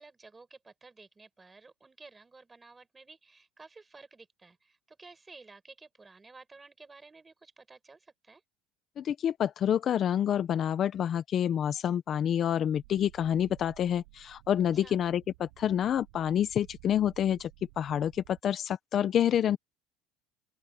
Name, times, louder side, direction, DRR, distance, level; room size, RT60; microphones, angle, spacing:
voice 1, 0.0-8.4 14.7-15.0, right 3 dB, 10° right, 6.0 m, -53 dB
voice 2, 9.0-17.5 17.8-19.6, left 10 dB, 30° left, 0.6 m, -28 dB
sound 1, 12.7-18.4, right 30 dB, 85° right, 7.5 m, -55 dB
open air
cardioid pair, 160°, 0 cm